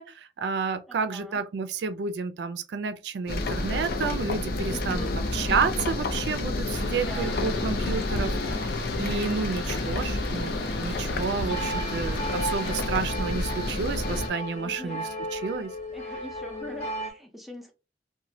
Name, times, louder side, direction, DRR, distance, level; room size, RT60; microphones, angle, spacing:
voice 1, 0.0-15.7, right 5 dB, 70° right, 0.4 m, -31 dB
voice 2, 0.9-1.4 4.7-5.2 6.8-7.4 14.6-15.0 15.9-17.7, left 1 dB, ahead, 0.5 m, -42 dB
sound 1, 3.3-14.3, left 2 dB, 55° left, 0.5 m, -29 dB
sound 2, 6.7-12.9, left 2 dB, 85° left, 0.9 m, -39 dB
sound 3, 11.5-17.1, right 1 dB, 40° left, 0.9 m, -35 dB
2.9 x 2.2 x 2.6 m
head